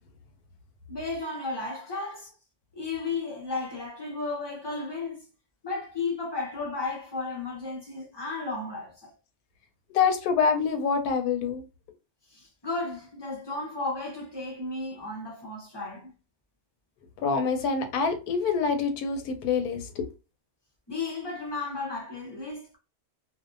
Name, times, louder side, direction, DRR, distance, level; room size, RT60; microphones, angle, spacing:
voice 1, 0.9-2.3 2.7-5.2 5.6-9.1 12.3-16.1 20.9-22.8, left 3 dB, 35° left, 0.4 m, -34 dB
voice 2, 9.9-11.6 17.2-20.0, left 5 dB, 80° left, 1.1 m, -26 dB
2.6 x 2.3 x 2.4 m
omnidirectional pair, 1.6 m